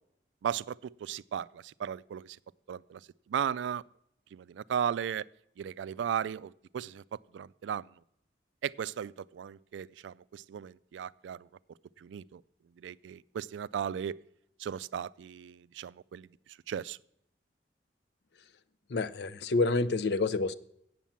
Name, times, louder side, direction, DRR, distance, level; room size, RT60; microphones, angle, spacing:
voice 1, 0.4-2.4 2.7-3.0 3.3-3.8 4.3-5.3 5.6-7.9 8.6-11.5 12.0-12.4 12.8-14.2 14.6-16.3 16.7-17.0, right 8 dB, 90° right, 19 dB, 0.3 m, -36 dB
voice 2, 18.9-20.5, left 3 dB, 65° left, 14 dB, 0.5 m, -28 dB
8.2 x 7.1 x 7.3 m, 0.76 s
head